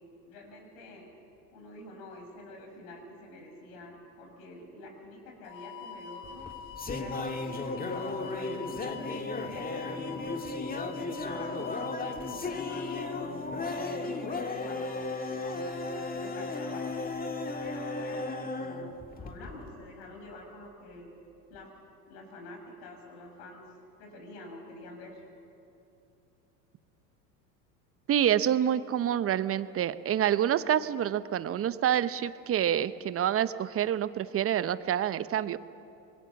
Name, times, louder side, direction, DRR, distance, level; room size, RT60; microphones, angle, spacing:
voice 1, 0.3-1.1 1.5-6.5 6.9-7.9 8.2-10.2 10.7-17.0 17.6-21.1 21.5-21.7 22.1-25.2, left 1 dB, 60° left, 3 dB, 6.5 m, -47 dB
sound 1, 5.5-13.1, left 7 dB, 75° left, 1.8 m, -44 dB
sound 2, 6.2-19.7, left 3 dB, 20° left, 1.9 m, -35 dB
voice 2, 28.1-35.6, right 10 dB, 30° right, 15 dB, 0.8 m, -27 dB
25.5 x 21.5 x 7.2 m, 2.9 s
hypercardioid pair, 85°, 48 cm